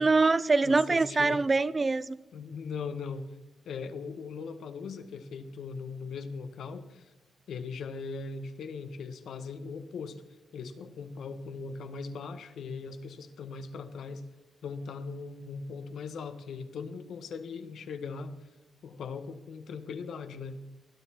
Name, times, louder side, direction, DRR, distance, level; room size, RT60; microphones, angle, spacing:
voice 1, 0.0-2.2, right 3 dB, 25° right, 0.5 m, -24 dB
voice 2, 0.6-1.4 2.3-3.3 3.6-7.1 7.5-10.2 10.5-14.2 14.6-18.4 18.8-20.6, left 5 dB, 70° left, 1.4 m, -39 dB
20.0 x 12.0 x 4.4 m
cardioid pair, 130°, 0 cm